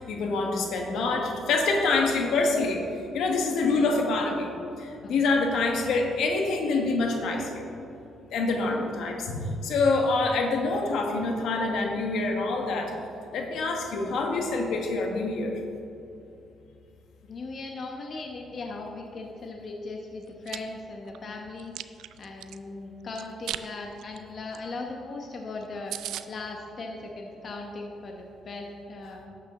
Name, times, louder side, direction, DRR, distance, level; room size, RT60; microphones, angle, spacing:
voice 1, 0.0-2.8 3.1-4.5 4.8-7.7 8.3-12.9 13.3-15.6, left 3 dB, 75° left, 2 dB, 1.4 m, -26 dB
voice 2, 3.5-4.0 5.0-5.4 17.2-21.7 22.2-25.9 26.3-29.2, left 3 dB, 50° left, 1 dB, 1.0 m, -38 dB
Chewing mastication, 20.2-20.6 21.1-22.6 23.2-23.7 24.0-24.2 24.5-24.6 24.9-25.0 25.3-25.4 25.6-25.7 25.9-26.3, right 12 dB, 85° right, 0.4 m, -36 dB
12.0 x 8.4 x 3.8 m, 2.7 s
cardioid pair, 90°, 0 cm